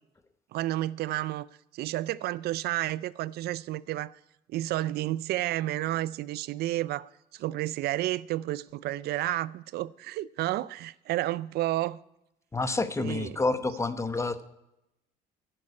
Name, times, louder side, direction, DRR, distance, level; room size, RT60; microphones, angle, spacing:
voice 1, 0.5-1.5 1.7-4.2 4.5-12.0 13.0-13.4, right 15 dB, 70° right, 0.4 m, -31 dB
voice 2, 12.5-14.5, left 3 dB, 15° left, 0.9 m, -29 dB
11.0 x 7.7 x 9.5 m
cardioid pair, 110°, 17 cm